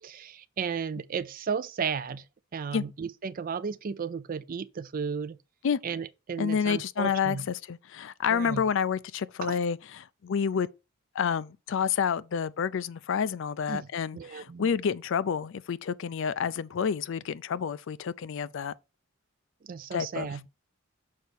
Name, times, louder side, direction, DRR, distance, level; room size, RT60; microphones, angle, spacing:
voice 1, 0.0-2.2 2.5-5.4 5.8-7.5 8.3-8.7 9.4-9.6 13.7-13.9 14.1-14.7 19.7-20.4, right 6 dB, 40° right, 0.4 m, -34 dB
voice 2, 6.4-10.7 11.1-18.7 19.9-20.3, left 7 dB, 60° left, 0.4 m, -29 dB
6.6 x 4.6 x 4.2 m
head